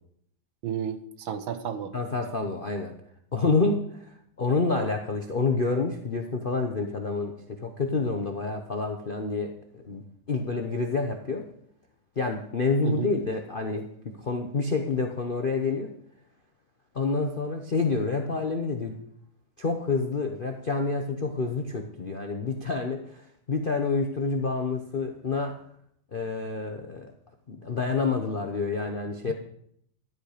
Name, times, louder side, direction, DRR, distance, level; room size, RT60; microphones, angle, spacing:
voice 1, 0.6-1.9 12.8-13.1 29.3-29.4, right 8 dB, 70° right, 10 dB, 1.7 m, -32 dB
voice 2, 1.9-2.9 3.3-10.0 10.3-11.4 12.2-13.9 14.2-15.9 16.9-18.9 19.6-23.2 23.5-25.5 26.1-27.1 27.5-29.3, left 4 dB, 45° left, 4 dB, 0.6 m, -28 dB
13.5 x 11.0 x 5.0 m, 0.69 s
omnidirectional pair, 2.4 m